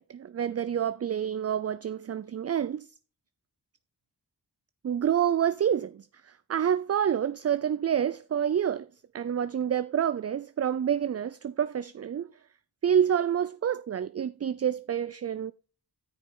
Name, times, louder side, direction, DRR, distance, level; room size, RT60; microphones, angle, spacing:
voice 1, 0.0-2.9 4.8-8.9 9.1-12.3 12.8-15.5, right 9 dB, 40° right, 0.4 m, -28 dB
13.5 x 5.1 x 3.8 m
cardioid pair, 55°, 41 cm